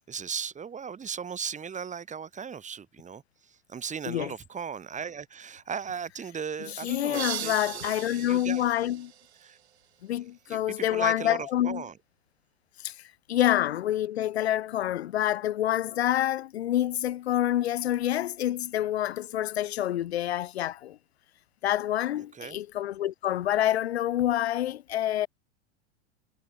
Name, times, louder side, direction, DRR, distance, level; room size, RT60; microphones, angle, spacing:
voice 1, 0.1-8.6 9.4-9.6 10.5-11.9 22.3-22.6, right 7 dB, 20° right, 5.2 m, -37 dB
voice 2, 6.8-9.1 10.0-11.8 12.8-13.0 13.3-21.0 21.6-25.3, left 12 dB, 65° left, 3.5 m, -27 dB
sound 1, 7.1-9.9, right 11 dB, 70° right, 2.6 m, -38 dB
figure-of-eight pair, 90°, 33 cm